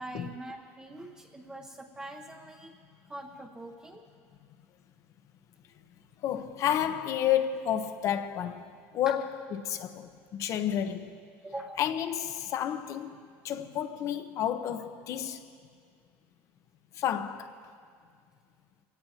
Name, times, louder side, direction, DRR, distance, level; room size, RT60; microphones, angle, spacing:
voice 1, 0.0-2.7 3.1-4.1 9.1-9.2 11.4-11.8, right 1 dB, 15° right, 0.8 m, -43 dB
voice 2, 6.2-8.6 8.9-11.2 11.8-15.4 16.9-17.5, left 10 dB, 55° left, 0.9 m, -31 dB
23.0 x 17.0 x 2.9 m
cardioid pair, 120°, 6 cm